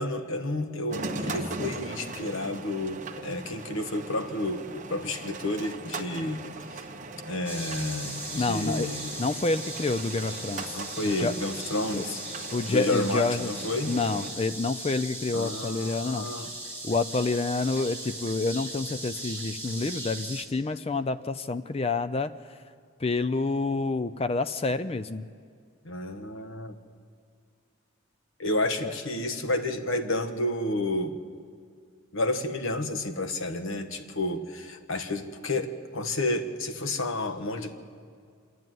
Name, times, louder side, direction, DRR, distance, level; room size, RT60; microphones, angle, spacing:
voice 1, 0.0-6.4 6.7-6.8 7.3-9.2 10.7-12.2 12.7-14.0 15.3-16.5 25.8-26.7 28.4-31.1 32.1-37.8, left 1 dB, 65° left, 7 dB, 1.4 m, -30 dB
sound 1, 0.9-14.3, right 2 dB, 35° right, 1.1 m, -39 dB
sound 2, 7.5-20.4, right 1 dB, 10° left, 2.2 m, -38 dB
voice 2, 8.4-11.3 11.9-12.0 12.5-13.5 13.9-16.3 16.8-22.3 23.0-25.2 28.8-28.9, left 3 dB, 25° left, 13 dB, 0.4 m, -28 dB
27.0 x 11.0 x 9.3 m, 2.2 s
head